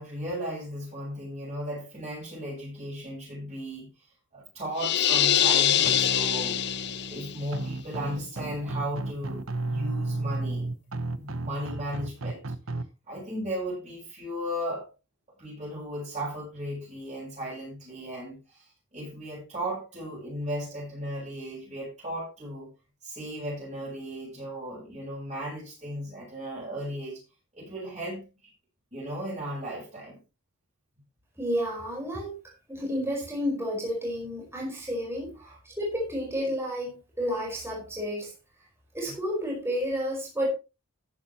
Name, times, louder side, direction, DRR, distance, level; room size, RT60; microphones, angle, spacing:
voice 1, 0.0-3.9 4.3-6.6 7.1-10.7 11.1-12.4 13.1-14.9 15.4-22.7 23.0-27.2 27.5-28.5 28.9-30.2 35.4-35.6 39.1-39.2, equal, 30° right, 7.6 m, -36 dB
sound 1, 4.8-7.3, left 10 dB, 55° left, 0.7 m, -24 dB
sound 2, 5.8-12.8, right 2 dB, 75° right, 1.1 m, -33 dB
voice 2, 31.4-35.3 35.6-38.3 38.9-40.5, equal, 10° right, 5.0 m, -31 dB
14.5 x 10.5 x 3.0 m
head